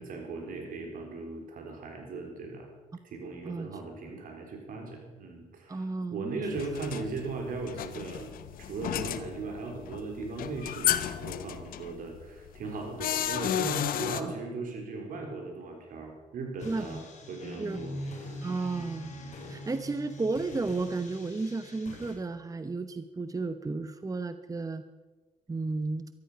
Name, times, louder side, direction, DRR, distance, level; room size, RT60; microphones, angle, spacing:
voice 1, 0.0-2.7 3.0-8.3 8.6-17.0 17.3-18.4 18.7-19.3, right 3 dB, 70° right, 2 dB, 4.2 m, -38 dB
voice 2, 5.7-6.4 16.6-17.0 17.6-17.8 18.4-19.2 19.5-24.8 25.5-26.1, right 3 dB, 25° right, 11 dB, 0.9 m, -33 dB
sound 1, 6.5-14.2, left 11 dB, 75° left, 0.8 m, -33 dB
sound 2, 16.6-22.1, left 1 dB, 55° left, 4.3 m, -43 dB
14.0 x 14.0 x 5.8 m, 1.2 s
supercardioid pair, 65°, 15 cm